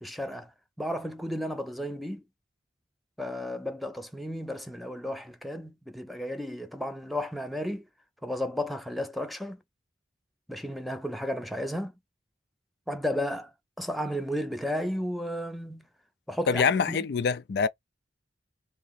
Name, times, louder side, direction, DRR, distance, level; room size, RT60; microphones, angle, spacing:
voice 1, 0.0-0.5 0.8-2.2 3.2-7.8 8.2-9.6 10.5-11.9 12.9-13.5 13.8-15.9 16.3-16.6 16.9-17.0, equal, ahead, 0.5 m, -33 dB
voice 2, 16.5-17.7, left 5 dB, 60° left, 0.4 m, -25 dB
2.9 x 2.9 x 4.1 m
head